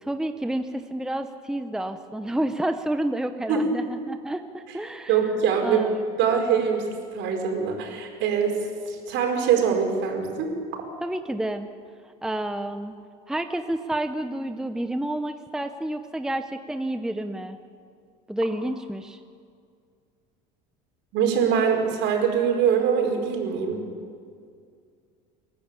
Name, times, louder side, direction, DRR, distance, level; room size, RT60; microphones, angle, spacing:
voice 1, 0.0-5.2 5.6-6.0 11.0-11.7 12.2-12.9 13.3-17.6 18.3-19.2, right 1 dB, 5° right, 8 dB, 0.9 m, -29 dB
voice 2, 5.1-5.8 6.2-6.9 7.1-8.6 8.9-10.8 21.1-23.8, right 7 dB, 60° right, 2 dB, 5.1 m, -23 dB
30.0 x 11.5 x 8.4 m, 2.2 s
supercardioid pair, 105°, 21 cm